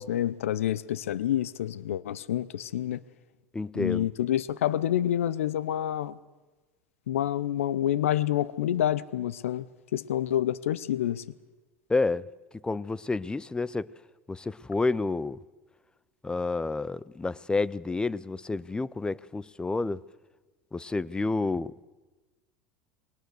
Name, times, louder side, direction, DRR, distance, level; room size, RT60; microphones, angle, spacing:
voice 1, 0.0-3.0 3.7-6.2 7.1-9.7 9.9-11.2, left 11 dB, 80° left, 0.7 m, -28 dB
voice 2, 3.5-4.1 11.9-12.2 12.6-13.9 14.3-15.4 16.2-20.0 20.7-21.7, left 3 dB, 10° left, 0.6 m, -29 dB
20.5 x 18.5 x 8.0 m
hypercardioid pair, 90°, 7 cm